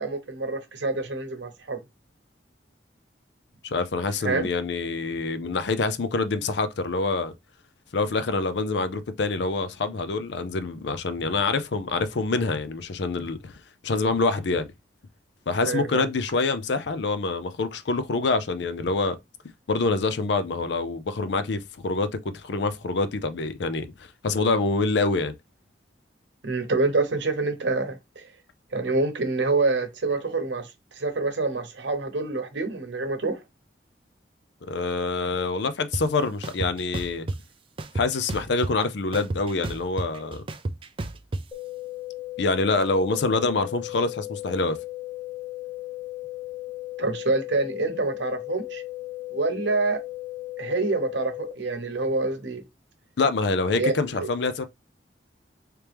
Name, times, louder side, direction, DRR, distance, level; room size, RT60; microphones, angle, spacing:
voice 1, 0.0-1.8 4.2-4.5 15.6-16.0 26.4-28.3 28.7-30.7 31.0-33.4 47.0-48.8 49.3-50.0 50.6-52.6 53.8-54.3, right 3 dB, 75° right, 0.9 m, -26 dB
voice 2, 3.6-7.3 7.9-13.5 13.8-14.6 15.5-19.2 19.7-25.3 34.6-37.3 37.9-40.4 42.4-44.8 53.2-54.7, left 3 dB, 70° left, 0.5 m, -26 dB
sound 1, 35.9-36.0 36.4-37.4 37.8-38.8 39.1-41.4, right 2 dB, 30° right, 0.3 m, -31 dB
sound 2, 41.5-51.5, left 18 dB, 20° left, 0.9 m, -36 dB
3.3 x 2.9 x 3.4 m
head